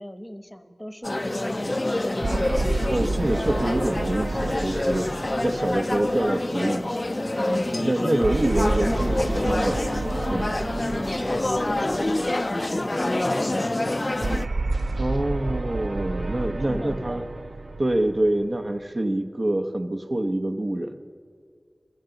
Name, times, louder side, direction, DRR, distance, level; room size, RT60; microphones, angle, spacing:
voice 1, 0.0-2.1 8.4-8.6 11.1-14.1 16.7-17.3, equal, 5° left, 9 dB, 0.9 m, -39 dB
sound 1, 1.0-14.5, left 1 dB, 35° left, 0.4 m, -27 dB
sound 2, 2.2-6.8 8.2-12.6 14.2-18.8, right 2 dB, 70° right, 0.4 m, -30 dB
voice 2, 2.9-5.1 5.4-7.0 7.4-9.8 10.3-10.6 15.0-17.2 17.8-21.0, right 1 dB, 50° right, 5 dB, 0.9 m, -26 dB
22.5 x 14.0 x 3.9 m, 2.1 s
wide cardioid pair, 65°, 0 cm